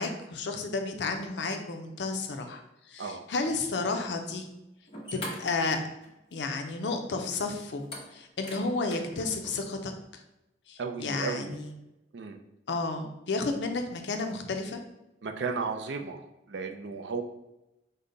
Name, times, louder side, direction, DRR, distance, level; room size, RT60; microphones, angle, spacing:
voice 1, 0.0-2.6 2.9-4.5 5.1-5.8 6.3-7.8 8.1-9.9 10.7-11.7 12.7-14.8, left 3 dB, 75° left, 5 dB, 0.6 m, -32 dB
sound 1, 4.5-4.6 4.9-6.3 6.6-6.7 7.8-9.6, left 1 dB, 35° left, 1.1 m, -42 dB
voice 2, 10.8-11.6 12.1-12.4 15.2-17.2, right 5 dB, 75° right, 5 dB, 0.5 m, -34 dB
5.3 x 2.1 x 3.8 m, 0.91 s
head